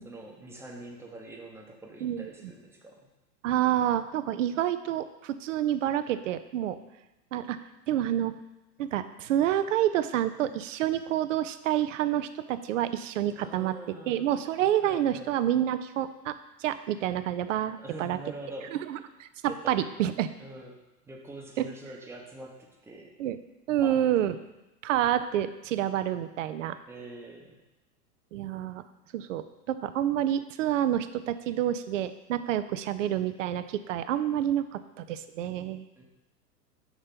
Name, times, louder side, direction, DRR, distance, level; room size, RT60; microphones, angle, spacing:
voice 1, 0.0-3.1 13.3-14.3 14.8-15.3 17.7-18.8 19.4-19.8 20.4-20.8 21.0-23.2 23.8-24.3 26.9-27.6 36.0-36.1, right 2 dB, 5° right, 0 dB, 0.8 m, -44 dB
voice 2, 3.4-6.8 7.3-7.6 7.9-8.3 8.8-13.7 14.1-18.2 18.9-20.3 21.6-21.7 23.2-23.4 23.7-24.3 24.8-26.8 28.3-28.8 29.1-35.8, right 11 dB, 50° right, 12 dB, 0.5 m, -28 dB
6.0 x 4.2 x 5.1 m, 0.97 s
figure-of-eight pair, 100°, 49 cm